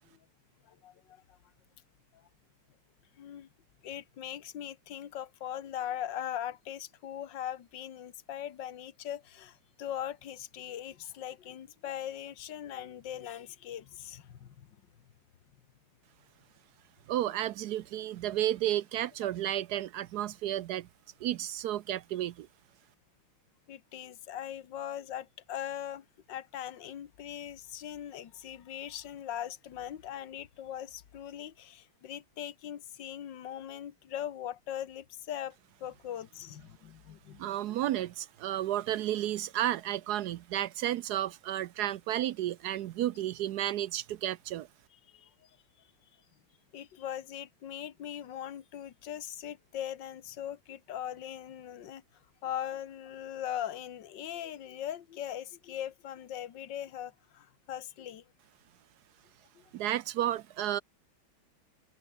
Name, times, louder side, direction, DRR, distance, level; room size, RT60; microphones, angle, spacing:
voice 1, 0.6-1.4 2.1-2.3 3.2-3.5 3.8-14.8 23.7-37.5 45.1-45.9 46.7-52.0 52.4-58.3 59.6-59.7, left 10 dB, 65° left, 2.0 m, -40 dB
voice 2, 17.1-20.9 21.2-22.5 37.4-44.7 59.7-60.8, right 12 dB, 70° right, 0.9 m, -32 dB
omnidirectional pair, 2.2 m